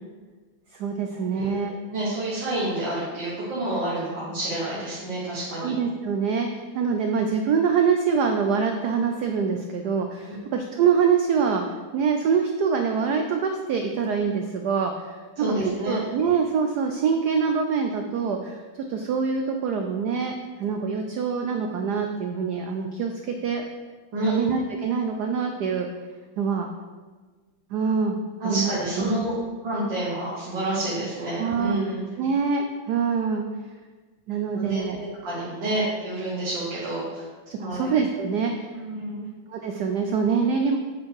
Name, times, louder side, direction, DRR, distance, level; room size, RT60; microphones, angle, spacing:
voice 1, 0.7-1.7 5.6-11.6 11.9-15.3 15.8-18.6 18.9-23.6 24.3-25.9 26.4-26.7 27.7-28.2 28.4-29.1 31.4-31.8 32.2-33.4 34.3-35.0 37.5-38.7 39.5-40.8, right 6 dB, 85° right, 4 dB, 0.8 m, -25 dB
voice 2, 1.9-5.7 10.3-10.4 15.4-16.0 24.1-24.4 28.4-29.3 29.6-32.0 34.5-37.2 37.6-37.9 38.7-39.3, right 1 dB, 60° right, -7 dB, 2.1 m, -28 dB
8.4 x 4.5 x 4.7 m, 1.4 s
omnidirectional pair, 2.4 m